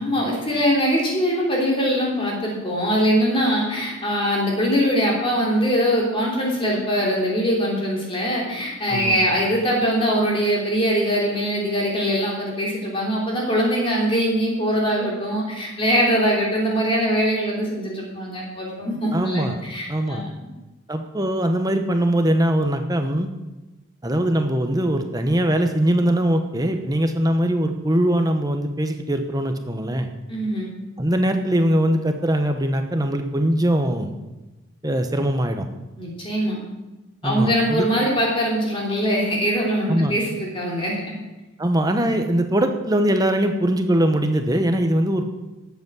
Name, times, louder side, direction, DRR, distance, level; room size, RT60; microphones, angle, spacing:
voice 1, 0.0-20.5 30.3-30.7 36.0-36.6 37.2-41.2, equal, 25° left, -3 dB, 3.1 m, -22 dB
voice 2, 8.9-9.2 19.1-19.6 19.9-20.2 20.9-23.3 24.0-30.1 31.0-34.1 34.8-35.7 37.2-37.8 39.9-40.1 41.6-45.3, right 1 dB, 15° right, 6 dB, 1.0 m, -21 dB
12.5 x 8.3 x 6.2 m, 1.1 s
head